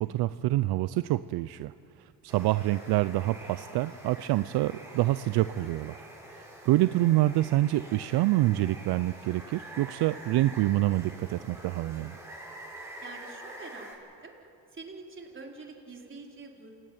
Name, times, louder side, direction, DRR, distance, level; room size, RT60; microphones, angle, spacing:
voice 1, 0.0-1.7 2.0-6.0 6.3-12.2, right 16 dB, 70° right, 14 dB, 0.6 m, -27 dB
Water, 2.3-13.9, right 1 dB, 5° right, 6.9 m, -46 dB
voice 2, 13.0-13.9 14.2-14.3 14.7-16.7, right 3 dB, 30° right, 0 dB, 4.3 m, -45 dB
28.0 x 17.5 x 9.4 m, 2.7 s
cardioid pair, 90°, 40 cm